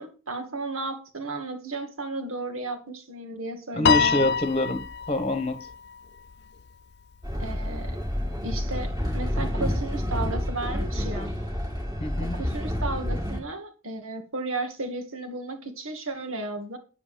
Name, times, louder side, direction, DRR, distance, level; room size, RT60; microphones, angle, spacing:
voice 1, 0.0-4.4 7.4-8.0 8.4-11.4 12.2-16.8, right 2 dB, 75° right, 2.2 m, -34 dB
voice 2, 3.7-5.6 12.0-12.4, left 1 dB, 30° left, 1.2 m, -26 dB
Piano, 3.9-6.3, left 6 dB, 50° left, 0.4 m, -26 dB
Train, 7.2-13.4, equal, 20° right, 2.3 m, -29 dB
9.6 x 8.1 x 5.1 m
head